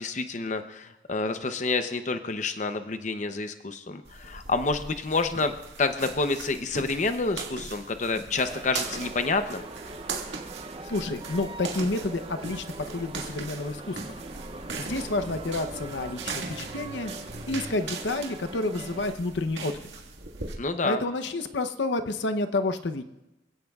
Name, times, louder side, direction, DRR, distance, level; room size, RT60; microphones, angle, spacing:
voice 1, 0.0-9.6 20.6-21.0, left 3 dB, 40° left, 8 dB, 0.7 m, -28 dB
sound 1, 4.1-20.5, right 4 dB, 80° right, 1.9 m, -39 dB
sound 2, 8.4-19.1, right 2 dB, 30° right, 0.6 m, -42 dB
voice 2, 10.8-14.1 14.8-17.1 17.5-19.9 20.8-23.0, left 2 dB, 75° left, 8 dB, 0.8 m, -30 dB
26.5 x 16.5 x 2.4 m, 1.0 s
head